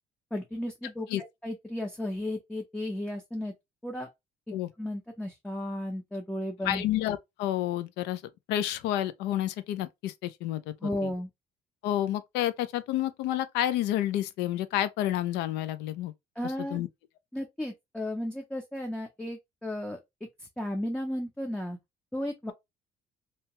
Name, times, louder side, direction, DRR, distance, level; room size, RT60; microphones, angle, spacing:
voice 1, 0.3-3.5 3.8-4.1 4.5-6.8 10.8-11.3 16.4-16.8 17.3-20.0 20.4-21.8 22.1-22.5, left 1 dB, 5° left, 0.5 m, -34 dB
voice 2, 6.6-8.2 8.5-11.1 11.8-16.1 16.7-16.9, left 12 dB, 90° left, 0.4 m, -30 dB
2.8 x 2.2 x 2.8 m
cardioid pair, 110°, 17 cm